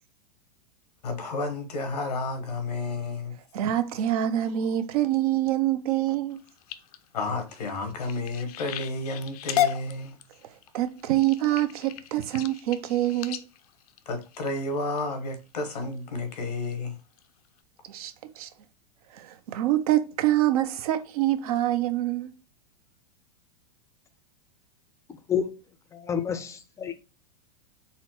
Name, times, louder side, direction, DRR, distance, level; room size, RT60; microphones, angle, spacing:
voice 1, 1.0-3.3 7.1-10.1 14.1-17.0, left 2 dB, 90° left, 1.0 m, -31 dB
voice 2, 3.5-6.4 10.7-13.4 17.9-18.5 19.1-22.3, right 13 dB, 65° right, 0.6 m, -25 dB
sound 1, 6.3-15.0 15.6-15.9 16.4-16.7 17.2-17.3 17.6-17.7, left 12 dB, 70° left, 0.5 m, -34 dB
voice 3, 25.9-26.9, left 8 dB, 15° left, 0.5 m, -29 dB
4.1 x 2.1 x 4.1 m
hypercardioid pair, 115°, 20 cm